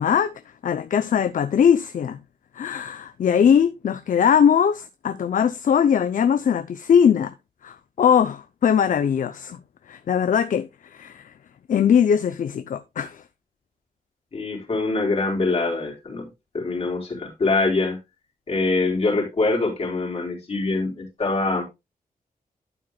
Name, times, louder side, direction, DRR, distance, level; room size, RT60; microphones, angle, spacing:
voice 1, 0.0-2.2 2.5-7.3 7.6-9.6 9.9-11.3 11.7-13.2, left 8 dB, 65° left, 0.6 m, -20 dB
voice 2, 14.3-16.3 16.5-18.0 18.5-21.6, left 3 dB, 45° left, 4.3 m, -24 dB
12.0 x 8.7 x 2.3 m
wide cardioid pair, 160°, 15 cm